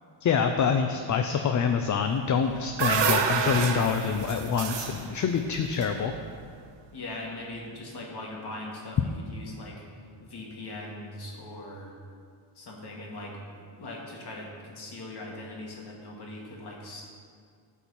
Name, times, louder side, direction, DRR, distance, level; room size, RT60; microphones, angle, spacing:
voice 1, 0.2-6.1, left 6 dB, 40° left, 6 dB, 0.5 m, -26 dB
sound 1, 2.3-6.6, right 6 dB, 65° right, 0.9 m, -29 dB
voice 2, 6.9-9.8 10.2-11.9 12.6-13.4 13.8-17.0, left 2 dB, 55° left, -2 dB, 2.1 m, -40 dB
11.5 x 4.6 x 6.9 m, 2.2 s
cardioid pair, 120°, 46 cm